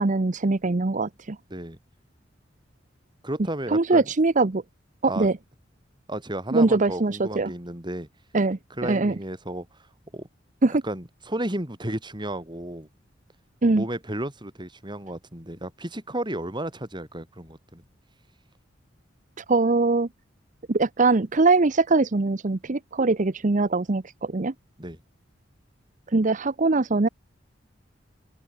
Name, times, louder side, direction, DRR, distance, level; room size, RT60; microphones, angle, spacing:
voice 1, 0.0-1.4 3.7-4.6 5.0-5.4 6.5-7.5 8.3-9.1 10.6-10.8 13.6-13.8 19.4-20.1 20.7-24.5 26.1-27.1, right 3 dB, 40° right, 0.8 m, -22 dB
voice 2, 3.2-4.1 5.1-5.3 6.1-8.1 8.8-9.7 10.1-10.3 10.8-12.9 13.7-17.8 24.8-25.0, right 1 dB, 25° right, 5.8 m, -33 dB
head